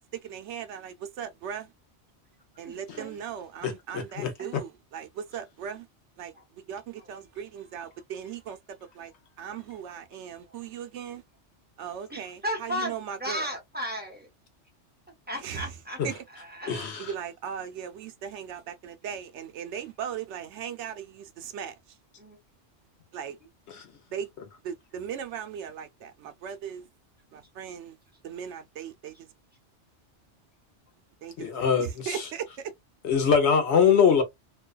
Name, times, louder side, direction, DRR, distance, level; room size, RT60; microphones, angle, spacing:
voice 1, 0.2-1.7 2.6-5.9 6.2-6.3 6.7-8.6 9.0-9.1 9.4-11.2 11.8-13.5 15.4-15.7 16.0-16.1 17.0-21.7 23.1-23.4 24.1-24.3 24.6-26.9 27.3-28.0 28.2-29.1 31.2-31.5 31.8-32.7, right 8 dB, 75° right, 0.8 m, -38 dB
voice 2, 2.6-3.2 4.4-4.6 6.3-7.1 7.8-7.9 9.9-10.0 10.4-10.7 12.1-14.3 15.3-16.0 16.3-16.9 22.2-22.4 23.4-23.5, equal, 10° right, 0.9 m, -36 dB
voice 3, 3.6-4.6 16.0-16.1 16.7-17.1 23.7-23.8 31.4-32.3 33.0-34.2, left 6 dB, 70° left, 1.0 m, -23 dB
2.5 x 2.3 x 2.2 m
omnidirectional pair, 1.2 m